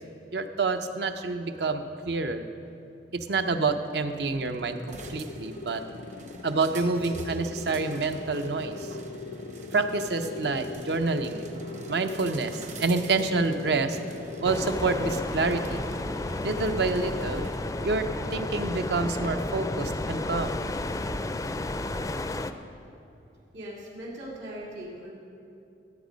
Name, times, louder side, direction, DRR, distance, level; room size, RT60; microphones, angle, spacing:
voice 1, 0.3-2.5 3.3-5.8 6.4-8.7 9.7-11.4 11.9-12.5 12.8-14.0 14.4-15.8 16.4-17.5 17.8-18.1 18.3-20.6, right 3 dB, 70° right, 8 dB, 0.7 m, -27 dB
sound 1, 3.6-15.4, left 3 dB, 85° left, 0.6 m, -41 dB
sound 2, 4.9-19.3, right 2 dB, 45° right, 0.9 m, -46 dB
sound 3, 14.4-22.5, left 2 dB, 20° left, 0.4 m, -32 dB
voice 2, 23.5-25.1, right 1 dB, 90° right, -6 dB, 2.5 m, -39 dB
15.5 x 8.4 x 5.2 m, 2.7 s
head